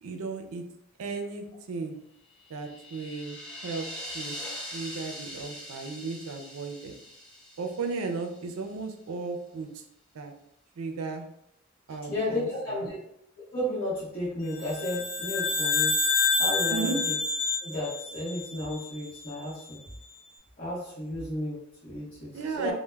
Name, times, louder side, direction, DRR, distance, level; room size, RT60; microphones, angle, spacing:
voice 1, 0.0-0.6 1.0-2.0 2.5-4.4 4.7-6.9 7.6-9.8 10.1-10.3 10.8-11.3 11.9-12.9 16.7-17.0 22.3-22.7, right 4 dB, 75° right, 5 dB, 0.4 m, -35 dB
sound 1, 2.4-8.6, equal, 5° left, 0.4 m, -42 dB
voice 2, 12.1-13.0 13.5-15.9 16.4-17.0 17.6-19.8 20.6-22.3 22.6-22.7, left 1 dB, 40° left, -11 dB, 0.8 m, -33 dB
sound 2, 14.6-19.1, left 4 dB, 85° left, 0.5 m, -28 dB
2.2 x 2.1 x 3.2 m, 0.75 s
head